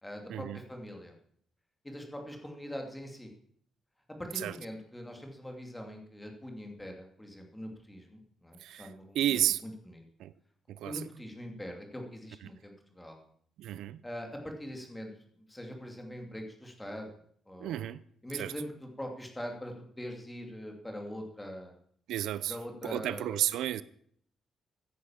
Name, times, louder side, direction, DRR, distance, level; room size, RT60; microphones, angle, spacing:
voice 1, 0.0-1.1 1.8-3.3 4.2-10.0 10.8-13.2 14.0-17.2 17.5-17.9 18.2-21.8 22.5-23.4, equal, 5° left, 2.7 m, -43 dB
voice 2, 9.1-9.6 10.2-10.3 10.7-11.0 13.6-14.0 17.6-18.0 18.4-18.5 22.1-22.6 22.8-23.8, right 12 dB, 90° right, 0.6 m, -31 dB
15.0 x 10.0 x 7.3 m
cardioid pair, 155°, 0 cm